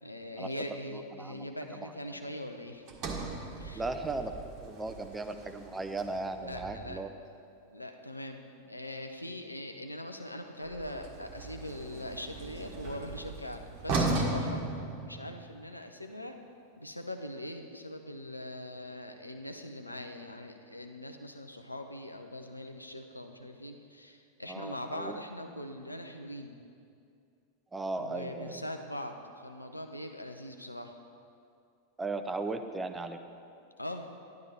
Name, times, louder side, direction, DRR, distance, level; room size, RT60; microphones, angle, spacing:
voice 1, 0.0-2.8 3.6-3.9 6.4-7.0 7.7-8.4 8.7-14.6 15.0-16.4 16.8-26.6 28.0-30.9 33.8-34.1, left 1 dB, 85° left, 4 dB, 0.8 m, -41 dB
Sliding door, 2.9-7.1 10.6-15.6, right 2 dB, 35° right, 1.6 m, -37 dB
voice 2, 3.7-4.3 4.6-7.1 24.5-25.2 27.7-28.6 32.0-33.2, right 3 dB, 10° right, 7 dB, 0.7 m, -36 dB
12.0 x 11.0 x 4.5 m, 2.4 s
figure-of-eight pair, 90°, 0 cm